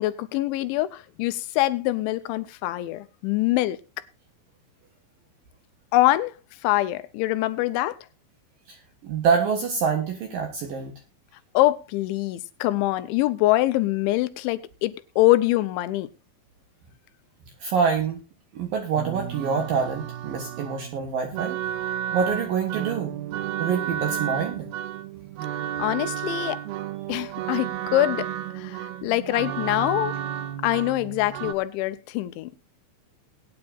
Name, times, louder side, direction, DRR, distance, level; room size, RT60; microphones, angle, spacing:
voice 1, 0.0-3.8 5.9-6.3 6.6-8.0 11.5-16.1 25.8-26.6 27.1-28.3 28.6-30.2 30.6-32.5, left 16 dB, 90° left, 3.2 m, -24 dB
voice 2, 9.0-10.9 17.6-18.2 18.5-21.6 22.1-23.1 23.6-24.7, right 6 dB, 60° right, 2.7 m, -26 dB
sound 1, 19.0-31.5, right 10 dB, 80° right, 2.2 m, -32 dB
20.5 x 9.7 x 2.5 m
omnidirectional pair, 5.2 m